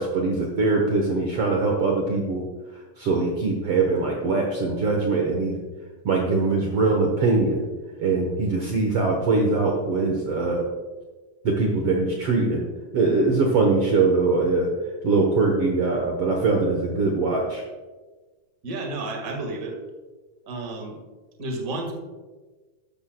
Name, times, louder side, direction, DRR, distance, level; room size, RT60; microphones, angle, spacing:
voice 1, 0.0-2.4 3.0-5.6 6.1-7.6 8.0-10.6 11.5-12.7 12.9-14.7 15.0-17.6, right 3 dB, 60° right, 0 dB, 1.7 m, -22 dB
voice 2, 18.6-19.8 20.5-21.0 21.4-21.9, right 2 dB, 35° right, 2 dB, 1.5 m, -31 dB
12.5 x 12.5 x 2.3 m, 1.3 s
omnidirectional pair, 3.7 m